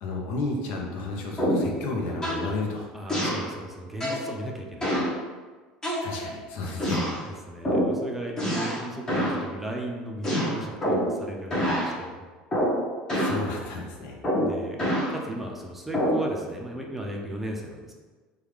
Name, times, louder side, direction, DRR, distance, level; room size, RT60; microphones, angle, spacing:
voice 1, 0.0-2.9 6.0-7.1 13.1-14.2, left 3 dB, 70° left, 0 dB, 0.6 m, -32 dB
sound 1, 1.4-1.7 2.2-2.5 3.1-3.5 4.0-4.3 4.8-5.1 5.8-6.4 6.8-7.2 7.6-8.0 8.4-8.8 9.1-9.4 10.2-11.2 11.5-11.9 12.5-12.8 13.1-13.4 14.2-15.1 15.9-16.2, equal, 20° left, 1.0 m, -26 dB
voice 2, 2.9-5.0 7.3-12.2 14.4-14.8 15.1-17.9, right 1 dB, 5° right, -1 dB, 0.5 m, -36 dB
3.2 x 2.3 x 3.2 m, 1.4 s
supercardioid pair, 105°, 3 cm